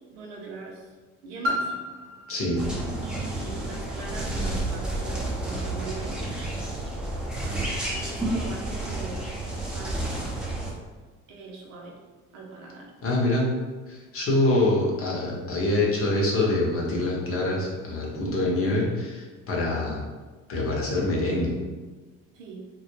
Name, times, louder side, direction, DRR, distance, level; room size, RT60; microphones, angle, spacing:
voice 1, 0.1-0.9 1.2-1.7 3.0-6.2 7.9-9.4 9.6-10.2 11.3-12.0 12.3-12.9 22.3-22.6, right 4 dB, 85° right, -1 dB, 0.6 m, -40 dB
Piano, 1.4-6.9 7.6-7.7, left 1 dB, 40° right, 0.7 m, -36 dB
voice 2, 2.3-2.6 13.0-13.5 13.9-20.0 20.5-21.5, left 2 dB, 40° left, -3 dB, 0.8 m, -25 dB
sound 1, 2.6-10.7, right 1 dB, ahead, 0.6 m, -30 dB
2.2 x 2.0 x 3.1 m, 1.3 s
hypercardioid pair, 70°, 36 cm